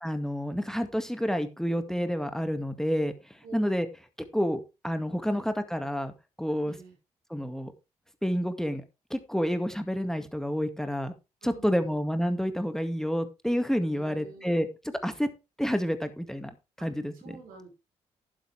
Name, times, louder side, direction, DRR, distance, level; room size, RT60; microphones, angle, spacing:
voice 1, 0.0-3.9 4.3-6.1 6.4-6.7 7.3-7.7 8.2-8.8 9.1-11.1 11.4-14.7 15.0-15.3 15.6-16.5 16.8-17.1, equal, 5° left, 8 dB, 2.0 m, -29 dB
voice 2, 6.6-6.9 11.4-12.0 13.9-14.6 16.8-16.9 17.1-17.7, right 3 dB, 80° right, 2 dB, 5.3 m, -48 dB
12.0 x 9.2 x 3.4 m, 0.27 s
hypercardioid pair, 45°, 15 cm